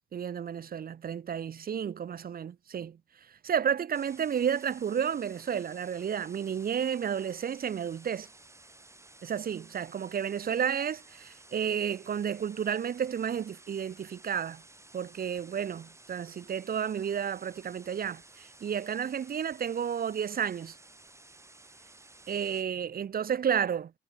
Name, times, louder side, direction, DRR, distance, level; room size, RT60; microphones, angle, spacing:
voice 1, 0.1-3.0 3.4-8.3 9.2-14.6 14.9-20.7 22.3-23.9, right 8 dB, 50° right, 1.2 m, -32 dB
sound 1, 3.9-22.6, right 2 dB, 15° right, 2.0 m, -55 dB
cardioid pair, 90°, 20 cm